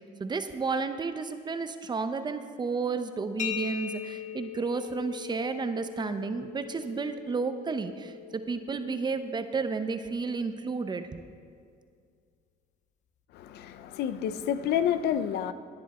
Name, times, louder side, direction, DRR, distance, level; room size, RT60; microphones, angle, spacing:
voice 1, 0.2-11.2, right 4 dB, 25° right, 9 dB, 0.7 m, -32 dB
sound 1, 3.4-10.9, left 10 dB, 45° left, 0.9 m, -41 dB
voice 2, 13.3-15.5, left 9 dB, 75° left, 12 dB, 0.6 m, -29 dB
16.0 x 9.8 x 4.3 m, 2.1 s
cardioid pair, 110°, 17 cm